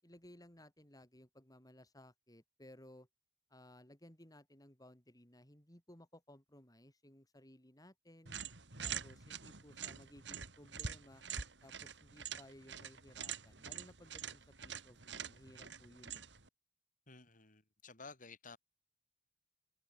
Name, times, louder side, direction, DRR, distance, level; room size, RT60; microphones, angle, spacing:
voice 1, 0.0-3.1 3.5-8.4 8.8-11.2 11.6-16.3, left 1 dB, 20° left, 6.0 m, -59 dB
sound 1, 8.3-16.5, right 7 dB, 80° right, 3.3 m, -46 dB
voice 2, 17.1-18.6, left 4 dB, 50° left, 7.9 m, -54 dB
head